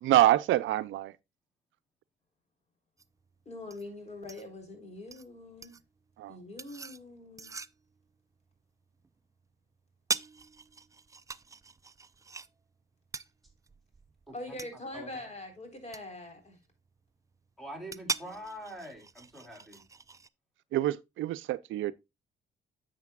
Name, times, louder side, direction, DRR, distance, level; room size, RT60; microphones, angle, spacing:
voice 1, 0.0-1.1 6.2-6.4 20.7-21.9, right 14 dB, 75° right, 0.5 m, -26 dB
sound 1, 3.0-20.3, right 4 dB, 15° right, 0.3 m, -43 dB
voice 2, 3.5-5.8 6.3-7.5 14.3-16.6, left 1 dB, 35° left, 3.8 m, -43 dB
voice 3, 14.3-14.6 14.9-15.1 17.6-19.8, equal, ahead, 3.7 m, -44 dB
10.5 x 7.6 x 2.3 m
cardioid pair, 90°, 20 cm